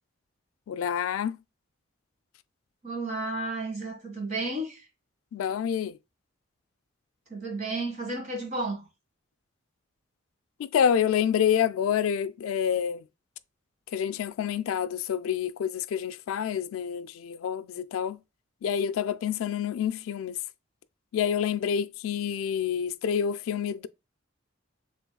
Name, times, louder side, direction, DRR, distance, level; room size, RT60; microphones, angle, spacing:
voice 1, 0.7-1.4 5.3-6.0 10.6-13.0 13.9-18.2 18.6-20.4 21.1-23.9, left 8 dB, 90° left, 0.3 m, -28 dB
voice 2, 2.8-4.9 7.3-8.9, right 2 dB, 35° right, 1.8 m, -32 dB
7.0 x 3.4 x 2.2 m
head